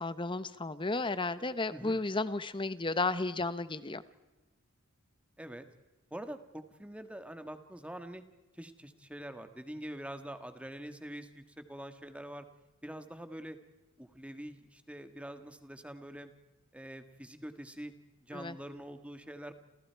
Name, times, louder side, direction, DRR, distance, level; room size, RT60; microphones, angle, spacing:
voice 1, 0.0-4.0 18.3-18.6, left 3 dB, 25° left, 14 dB, 1.0 m, -33 dB
voice 2, 6.1-8.2 8.5-12.5 12.8-13.6 14.0-16.3 16.7-17.9 18.2-19.5, right 1 dB, 5° right, 8 dB, 1.6 m, -45 dB
29.5 x 29.0 x 4.7 m, 1.1 s
head